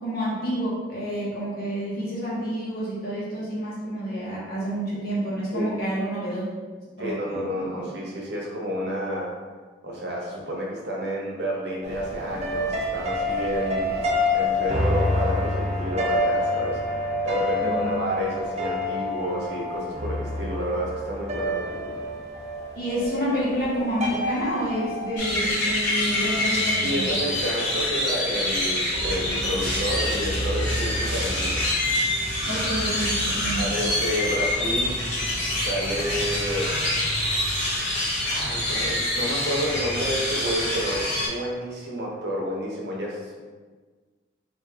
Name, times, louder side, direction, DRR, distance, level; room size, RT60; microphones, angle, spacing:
voice 1, 0.0-6.4 7.0-7.8 17.6-17.9 22.7-27.1 32.4-33.6, right 1 dB, 55° left, -7 dB, 1.2 m, -29 dB
voice 2, 7.0-9.3 9.8-22.0 26.8-31.7 33.6-35.1 35.6-36.8 38.3-43.4, equal, 65° right, -3 dB, 0.8 m, -30 dB
sound 1, 11.8-25.1, left 1 dB, 35° right, 0.5 m, -27 dB
sound 2, 25.2-41.3, left 1 dB, 75° left, 1.3 m, -26 dB
3.4 x 2.6 x 3.3 m, 1.4 s
head